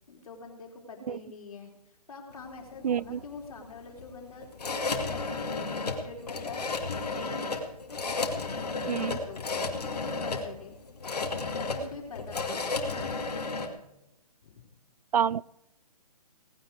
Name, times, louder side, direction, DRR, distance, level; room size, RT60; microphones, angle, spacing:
voice 1, 0.1-1.7 2.1-4.5 4.8-6.6 7.0-7.5 7.9-9.7 10.0-10.7 11.6-13.2 14.4-14.7, left 4 dB, 60° left, 2 dB, 4.1 m, -45 dB
sound 1, 2.3-13.7, left 3 dB, 80° left, 2.5 m, -33 dB
voice 2, 2.8-3.2 8.9-9.1 15.1-15.4, right 8 dB, 80° right, 25 dB, 0.4 m, -27 dB
18.5 x 9.6 x 4.8 m, 0.89 s
hypercardioid pair, 155°, 20 cm